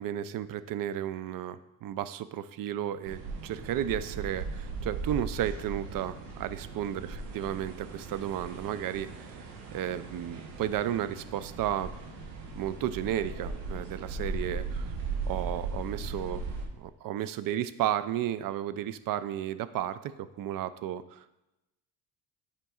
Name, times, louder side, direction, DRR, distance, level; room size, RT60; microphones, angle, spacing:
voice 1, 0.0-9.4 9.7-11.9 12.6-14.9 15.3-16.4 16.8-21.4, right 11 dB, 50° right, 14 dB, 0.5 m, -33 dB
sound 1, 3.1-16.7, right 3 dB, 90° right, 1.0 m, -38 dB
9.0 x 5.2 x 2.4 m, 0.95 s
supercardioid pair, 75°, 44 cm